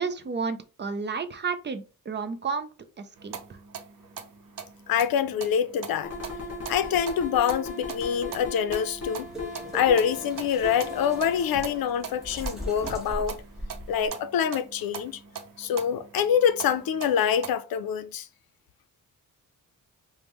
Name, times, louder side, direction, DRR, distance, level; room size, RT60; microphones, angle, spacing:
voice 1, 0.0-2.7 3.0-3.6, right 5 dB, 35° right, 0.4 m, -32 dB
sound 1, 3.2-17.5, right 6 dB, 70° right, 0.7 m, -42 dB
voice 2, 4.9-6.1 6.7-9.3 9.7-13.4 13.9-15.2 15.6-18.3, left 8 dB, 90° left, 0.5 m, -25 dB
sound 2, 6.0-12.9, left 3 dB, 40° left, 1.8 m, -38 dB
sound 3, 7.9-14.1, equal, ahead, 1.2 m, -40 dB
5.1 x 2.2 x 3.0 m
wide cardioid pair, 170°, 35 cm